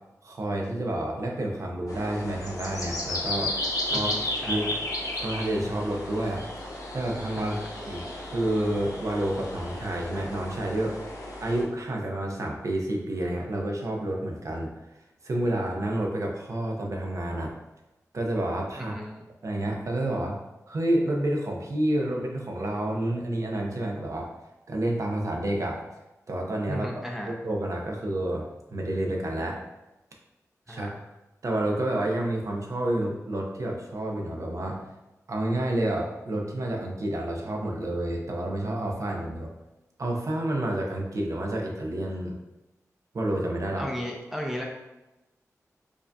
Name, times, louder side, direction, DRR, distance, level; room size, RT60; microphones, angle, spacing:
voice 1, 0.2-3.5 3.8-4.1 4.5-4.7 5.1-6.4 6.9-7.6 7.9-11.0 11.4-14.7 15.2-17.5 18.1-19.0 19.4-20.4 20.7-24.3 24.7-25.8 26.3-26.9 27.2-28.4 28.7-29.6 30.7-30.9 31.4-34.8 35.3-39.5 40.0-42.4 43.1-43.9, right 1 dB, 60° right, 0 dB, 0.6 m, -29 dB
sound 1, 1.9-11.6, left 1 dB, 90° left, 0.7 m, -34 dB
voice 2, 3.9-4.7 7.4-7.7 18.7-19.2 26.7-27.3 30.7-30.9 43.8-44.6, equal, 5° right, -1 dB, 0.5 m, -35 dB
4.8 x 2.6 x 2.2 m, 1.0 s
wide cardioid pair, 70°, 6 cm